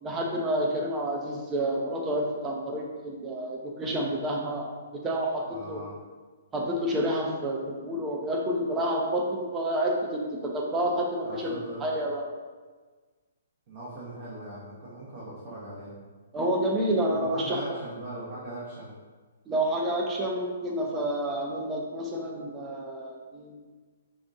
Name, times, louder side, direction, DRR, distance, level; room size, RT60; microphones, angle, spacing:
voice 1, 0.0-5.8 6.5-11.5 11.8-12.2 16.3-17.8 19.5-23.6, right 1 dB, 15° right, -1 dB, 0.6 m, -29 dB
voice 2, 5.5-5.9 11.2-11.8 13.7-15.9 17.1-18.9, right 1 dB, 40° right, -9 dB, 1.1 m, -40 dB
4.9 x 2.6 x 2.7 m, 1.4 s
figure-of-eight pair, 130°, 0 cm